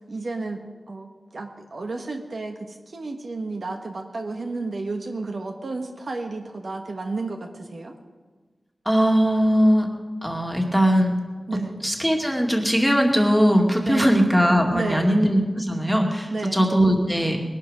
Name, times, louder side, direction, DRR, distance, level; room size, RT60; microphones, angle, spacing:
voice 1, 0.1-0.6 0.9-7.9 11.5-11.8 13.8-14.2 14.7-15.1 16.3-16.7, right 3 dB, 65° right, 3 dB, 1.3 m, -32 dB
voice 2, 8.9-9.9 10.2-11.1 11.8-17.4, equal, 5° right, 2 dB, 2.2 m, -20 dB
20.5 x 12.0 x 5.1 m, 1.4 s
wide cardioid pair, 80°, 0 cm